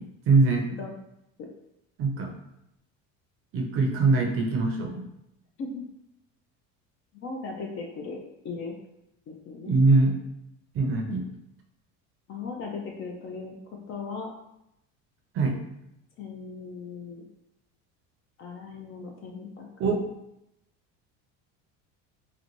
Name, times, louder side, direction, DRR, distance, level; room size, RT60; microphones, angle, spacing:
voice 1, 0.3-0.6 2.0-2.3 3.5-5.0 9.7-10.1 10.7-11.2 15.4-15.6 19.8-20.0, right 3 dB, 35° right, 1 dB, 0.5 m, -22 dB
voice 2, 7.2-8.2 8.4-8.7 9.3-9.8 12.3-13.5 13.9-14.3 16.2-17.3 18.4-19.9, left 4 dB, 35° left, 1 dB, 0.4 m, -37 dB
3.8 x 2.1 x 3.0 m, 0.81 s
cardioid pair, 155°, 38 cm